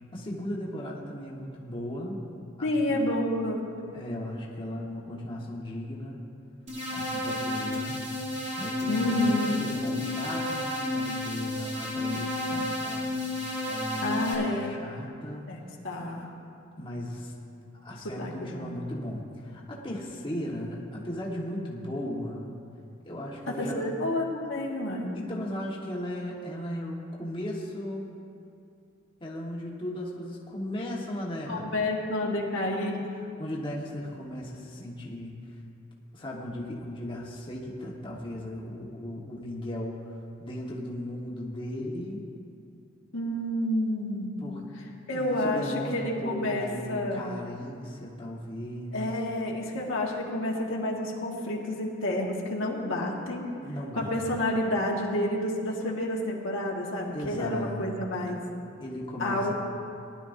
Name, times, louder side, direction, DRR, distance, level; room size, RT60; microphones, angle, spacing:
voice 1, 0.1-2.3 2.6-3.2 3.9-6.2 6.9-8.0 8.6-13.1 13.7-15.4 16.8-17.3 17.7-22.5 23.0-23.9 25.1-28.1 29.2-31.7 33.4-35.4 36.1-40.0 40.4-42.2 44.4-44.6 45.1-49.0 53.6-54.4 57.1-58.0 58.3-58.4 58.8-59.5, left 1 dB, 25° left, -4 dB, 1.3 m, -36 dB
voice 2, 2.6-3.6 8.9-9.7 14.0-14.8 15.5-16.3 18.0-18.7 23.5-25.2 31.5-33.1 43.1-44.4 45.1-47.3 48.9-53.5 54.0-58.4 59.2-59.5, left 1 dB, 75° left, -2 dB, 1.7 m, -29 dB
sound 1, 6.7-14.3, left 1 dB, 35° right, 2.7 m, -32 dB
19.0 x 11.5 x 2.7 m, 2.6 s
head